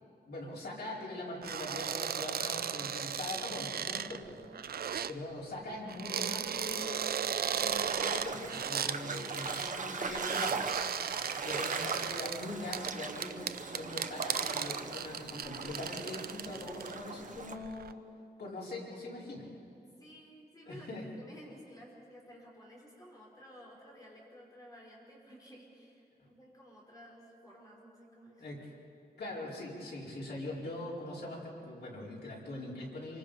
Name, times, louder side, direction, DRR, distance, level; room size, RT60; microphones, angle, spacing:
voice 1, 0.2-4.4 5.1-10.6 11.4-18.0 18.4-19.5 20.7-21.0 26.2-26.3 28.4-28.6 29.2-33.2, left 2 dB, 85° left, -5 dB, 5.1 m, -42 dB
sound 1, 1.4-5.1 5.9-9.8 10.1-17.0 17.4-17.9, right 8 dB, 70° right, 0.5 m, -36 dB
sound 2, 7.7-17.5, right 4 dB, 50° right, 1.1 m, -39 dB
voice 2, 19.8-28.4 29.1-29.3, equal, 20° left, -4 dB, 5.4 m, -54 dB
26.5 x 24.0 x 5.2 m, 2.5 s
wide cardioid pair, 175°, 17 cm